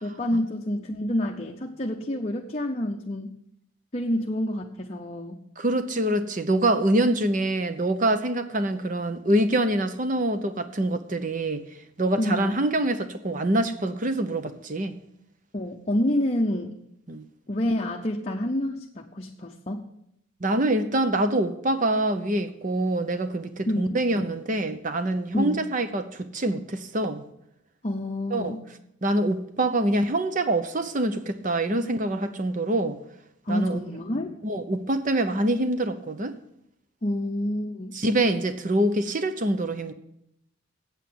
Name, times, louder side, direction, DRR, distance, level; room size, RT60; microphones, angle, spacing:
voice 1, 0.0-3.4 3.9-5.4 12.2-12.6 15.5-16.8 17.5-19.9 23.7-24.0 25.3-25.6 27.8-28.6 33.5-34.3 37.0-37.9, left 1 dB, 30° left, 0.7 m, -28 dB
voice 2, 5.6-11.6 12.0-15.0 17.1-17.2 20.4-27.2 28.3-28.5 29.0-33.0 33.5-33.8 34.4-36.4 37.9-39.9, right 1 dB, 40° right, 0.8 m, -25 dB
8.3 x 8.2 x 7.6 m
head